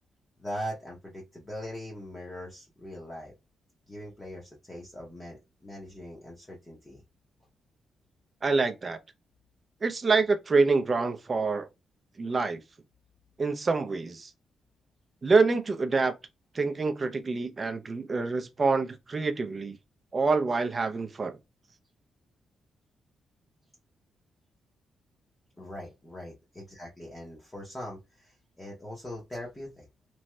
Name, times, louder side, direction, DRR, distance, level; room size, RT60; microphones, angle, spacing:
voice 1, 0.4-3.3 3.9-7.0 25.6-29.9, equal, 15° left, 0.7 m, -41 dB
voice 2, 8.4-9.0 9.8-11.7 12.2-12.6 13.4-14.3 15.2-16.1 16.5-19.8 20.1-21.4, right 4 dB, 25° right, 0.5 m, -26 dB
3.1 x 2.6 x 2.2 m
wide cardioid pair, 165°, 0 cm